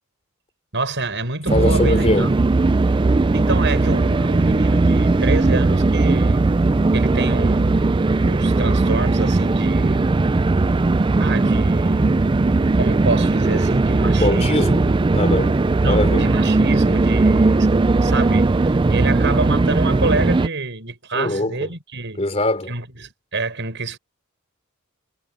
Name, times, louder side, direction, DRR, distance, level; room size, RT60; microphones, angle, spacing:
voice 1, 0.7-2.3 2.9-6.4 6.9-7.8 8.2-10.1 11.2-12.3 12.8-14.7 15.8-17.7 18.0-22.2 22.7-24.0, right 2 dB, 55° right, 6.7 m, -27 dB
voice 2, 1.5-2.4 14.2-16.4 21.1-21.7 22.2-22.7, left 1 dB, 30° left, 3.9 m, -22 dB
sound 1, 1.5-20.5, right 3 dB, 20° right, 0.4 m, -18 dB
head